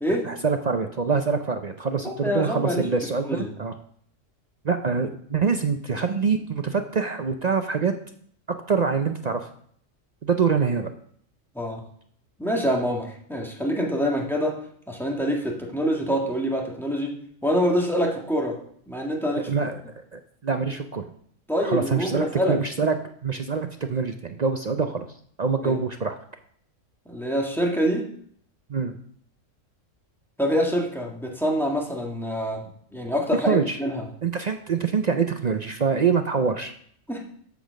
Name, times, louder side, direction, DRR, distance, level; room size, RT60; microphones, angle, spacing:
voice 1, 0.2-3.7 4.6-7.9 8.5-9.5 10.2-10.9 19.3-19.8 20.1-21.1 21.6-23.0 23.2-25.1 25.4-26.2 28.7-29.0 33.5-33.8 34.2-36.7, right 5 dB, 50° right, 7 dB, 0.5 m, -25 dB
voice 2, 2.0-2.9 3.3-3.5 11.6-11.8 12.4-18.6 18.9-19.5 21.5-22.6 25.6-25.8 27.1-28.0 30.4-34.0 37.1-37.2, equal, ahead, -1 dB, 1.7 m, -26 dB
8.4 x 6.2 x 6.3 m, 0.62 s
omnidirectional pair, 1.3 m